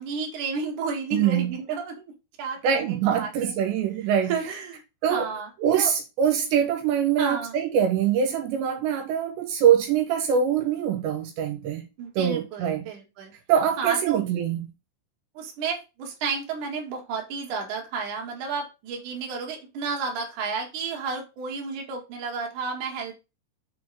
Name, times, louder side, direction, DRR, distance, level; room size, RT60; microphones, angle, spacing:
voice 1, 0.0-2.0 2.4-3.5 4.0-4.8 5.1-5.9 7.2-7.6 12.0-13.3 13.8-14.2 15.3-23.1, right 5 dB, 55° right, 2.8 m, -32 dB
voice 2, 1.1-1.5 2.6-4.3 5.0-5.3 5.6-11.8 12.2-12.9 13.5-14.6, right 8 dB, 80° right, 3.3 m, -23 dB
6.8 x 4.4 x 4.9 m
omnidirectional pair, 5.2 m